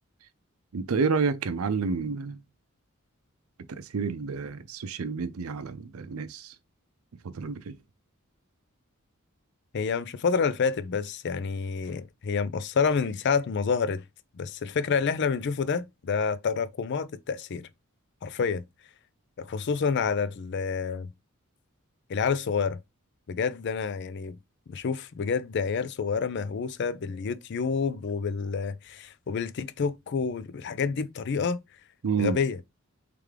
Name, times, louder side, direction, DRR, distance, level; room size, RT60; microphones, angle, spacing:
voice 1, 0.7-2.4 3.7-6.5 7.2-7.7 32.0-32.4, right 5 dB, 85° right, 0.5 m, -29 dB
voice 2, 9.7-14.0 14.3-17.7 18.2-18.6 19.4-21.1 22.1-22.8 23.3-24.4 24.7-31.6 32.2-32.6, left 5 dB, 55° left, 0.4 m, -28 dB
3.3 x 3.3 x 3.6 m
head